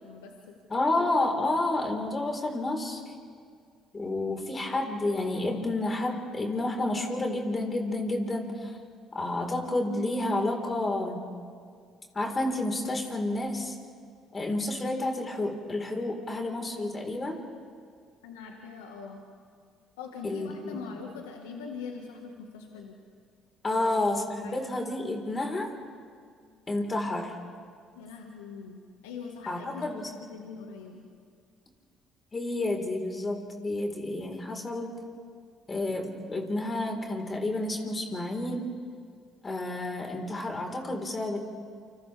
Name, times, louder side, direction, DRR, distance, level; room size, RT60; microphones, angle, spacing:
voice 1, 0.0-0.5 18.2-19.2 20.0-23.0 23.7-23.9 24.4-24.6 27.9-29.8 30.3-31.0, left 5 dB, 90° left, 2 dB, 1.6 m, -42 dB
voice 2, 0.7-3.1 3.9-8.8 9.1-11.3 12.1-13.8 14.3-17.4 20.2-21.0 23.6-25.7 26.7-27.4 29.5-30.1 32.3-35.0 35.7-38.7 39.4-41.4, left 2 dB, 30° left, 2 dB, 4.3 m, -30 dB
28.5 x 27.0 x 3.5 m, 2.1 s
hypercardioid pair, 60°, 0 cm